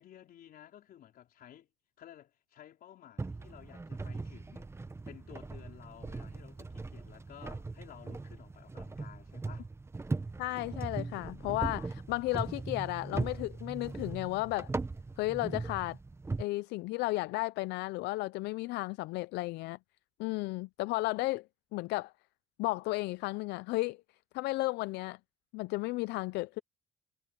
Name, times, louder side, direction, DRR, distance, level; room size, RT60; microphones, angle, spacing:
voice 1, 0.0-1.7 2.0-4.7 5.0-9.7, left 11 dB, 60° left, 4.3 m, -54 dB
sound 1, 3.2-16.4, right 3 dB, 15° right, 1.0 m, -39 dB
voice 2, 10.4-14.7 15.2-16.0 16.4-19.8 20.2-21.5 21.7-22.1 22.6-24.0 24.3-25.2 25.5-26.6, left 20 dB, 85° left, 0.4 m, -33 dB
cardioid pair, 110°, 17 cm